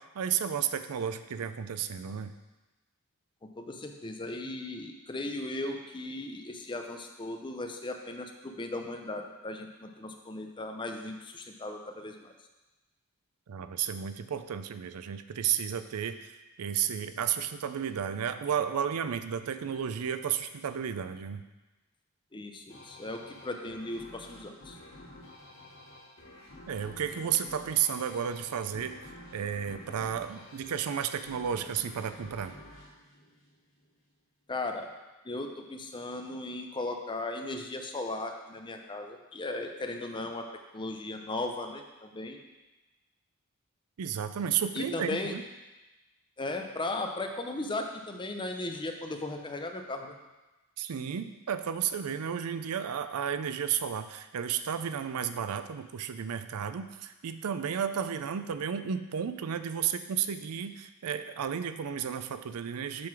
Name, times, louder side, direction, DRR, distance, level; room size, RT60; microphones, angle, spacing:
voice 1, 0.0-2.3 13.5-21.4 26.7-32.5 44.0-45.4 50.8-63.1, right 8 dB, 80° right, 11 dB, 0.4 m, -33 dB
voice 2, 3.4-12.3 22.3-24.8 34.5-34.9 35.2-40.4 40.7-42.4 44.7-45.3 46.4-50.1, left 2 dB, 20° left, 4 dB, 0.6 m, -37 dB
sound 1, 22.7-33.9, left 1 dB, 65° left, 2.4 m, -50 dB
7.6 x 3.8 x 6.0 m, 1.1 s
head